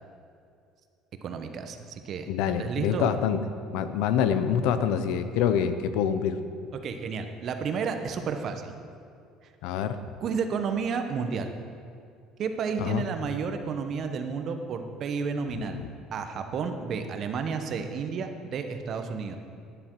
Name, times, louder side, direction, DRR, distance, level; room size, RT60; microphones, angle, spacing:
voice 1, 1.2-3.1 6.7-8.7 9.4-9.5 10.2-11.5 12.4-15.8 16.1-19.4, right 5 dB, 45° right, 7 dB, 1.0 m, -31 dB
voice 2, 2.3-3.4 3.7-6.4 9.6-10.0 12.8-13.0 15.5-15.9, left 8 dB, 80° left, 11 dB, 0.7 m, -26 dB
11.5 x 10.5 x 4.6 m, 2.4 s
cardioid pair, 135°, 0 cm